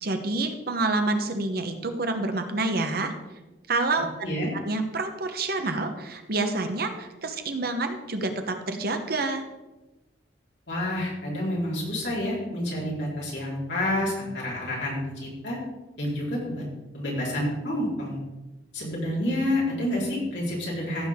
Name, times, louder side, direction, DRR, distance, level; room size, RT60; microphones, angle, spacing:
voice 1, 0.0-3.1 3.7-4.1 4.6-9.4, right 2 dB, 60° right, 6 dB, 1.1 m, -28 dB
voice 2, 10.7-15.6 16.0-16.6 16.9-18.2 18.7-21.1, left 1 dB, 70° left, -5 dB, 4.1 m, -29 dB
15.0 x 6.8 x 3.7 m, 1.1 s
head